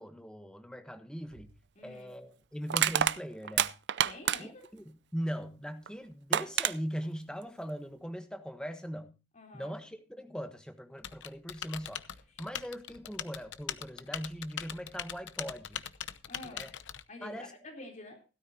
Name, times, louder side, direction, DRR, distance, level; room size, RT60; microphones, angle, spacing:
voice 1, 0.0-1.5 1.8-3.7 4.4-9.1 9.5-15.8 16.4-16.7 17.2-17.5, equal, 5° left, 1.3 m, -40 dB
Crushing, 1.3-1.5 2.7-4.7 5.9-6.0 6.3-6.7, right 10 dB, 65° right, 0.5 m, -28 dB
voice 2, 1.8-2.1 4.0-4.7 9.3-9.8 12.4-12.5 16.3-16.7 17.1-18.2, left 2 dB, 40° left, 3.6 m, -48 dB
Typing, 11.0-17.0, left 9 dB, 85° left, 0.8 m, -41 dB
16.5 x 12.5 x 2.8 m
head